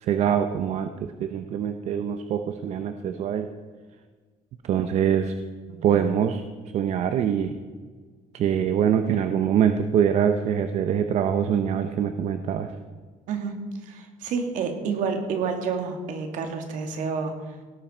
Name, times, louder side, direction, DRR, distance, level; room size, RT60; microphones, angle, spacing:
voice 1, 0.0-3.5 4.6-5.3 5.8-6.4 6.7-7.5 8.3-12.7, right 8 dB, 55° right, 8 dB, 0.8 m, -24 dB
voice 2, 13.8-17.3, right 5 dB, 70° right, 4 dB, 2.4 m, -29 dB
17.5 x 12.5 x 4.5 m, 1.5 s
cardioid pair, 150°, 13 cm